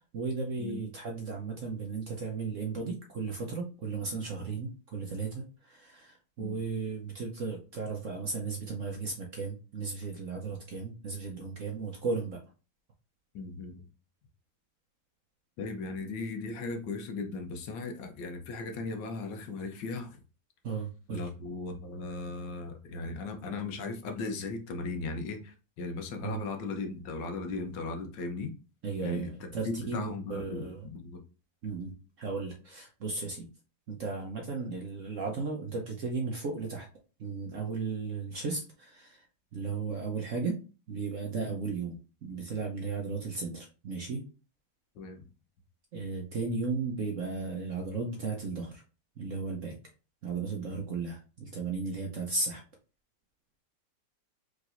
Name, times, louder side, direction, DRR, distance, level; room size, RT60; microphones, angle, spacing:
voice 1, 0.1-12.4 20.6-21.3 26.2-26.4 28.8-30.9 31.6-33.5 33.9-36.9 37.2-39.3 39.5-40.6 40.9-44.2 45.9-48.8 49.2-49.8 50.2-52.6, right 4 dB, 55° right, 0 dB, 0.9 m, -35 dB
voice 2, 13.3-13.8 15.6-20.2 21.1-28.5 29.0-31.2 45.0-45.2, left 3 dB, 70° left, 5 dB, 1.4 m, -37 dB
4.9 x 3.8 x 2.5 m, 0.34 s
omnidirectional pair, 2.0 m